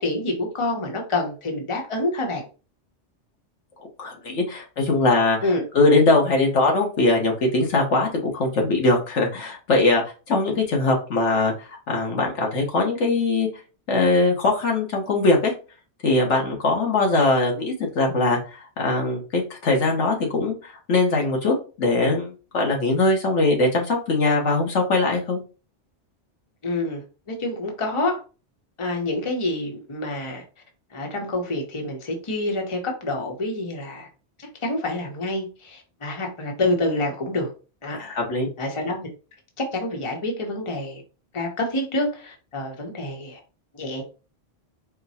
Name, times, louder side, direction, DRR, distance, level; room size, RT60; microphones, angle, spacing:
voice 1, 0.0-2.5 5.4-5.6 26.6-28.2 28.8-30.4 30.9-34.1 34.4-37.5 37.8-38.0 38.6-39.1 39.6-41.0 41.3-43.4 43.7-44.0, left 2 dB, 30° left, 1 dB, 0.9 m, -27 dB
voice 2, 4.0-5.4 5.7-10.0 10.3-13.5 13.9-15.5 16.0-18.4 18.8-25.4 37.9-38.5, left 2 dB, 80° left, 1 dB, 1.4 m, -21 dB
4.5 x 2.2 x 4.1 m, 0.34 s
omnidirectional pair, 1.2 m